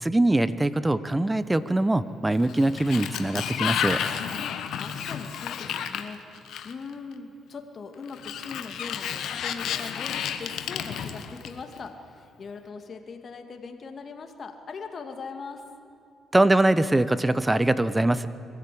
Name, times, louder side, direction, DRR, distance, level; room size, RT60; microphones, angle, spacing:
voice 1, 0.0-4.0 16.3-18.3, right 1 dB, 15° right, 15 dB, 0.9 m, -22 dB
Sliding door, 2.3-6.9 8.1-11.8, left 8 dB, 75° left, 1.3 m, -32 dB
voice 2, 4.3-15.6, left 4 dB, 45° left, 5 dB, 2.3 m, -40 dB
23.0 x 15.0 x 8.6 m, 2.7 s
cardioid pair, 90°, 0 cm